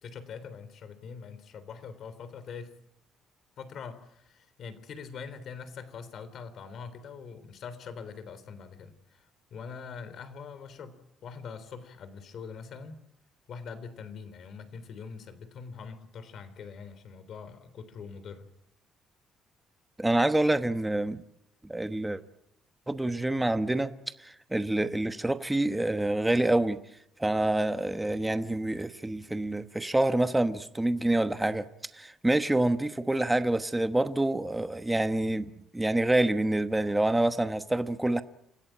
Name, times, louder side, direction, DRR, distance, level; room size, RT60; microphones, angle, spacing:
voice 1, 0.0-2.7 3.6-13.0 13.5-18.5, left 6 dB, 50° left, 3.4 m, -43 dB
voice 2, 20.0-21.2 21.6-22.2 22.9-23.9 24.2-26.8 27.2-31.7 31.9-38.2, right 1 dB, 10° right, 1.1 m, -27 dB
28.0 x 16.5 x 8.9 m
cardioid pair, 145°, 0 cm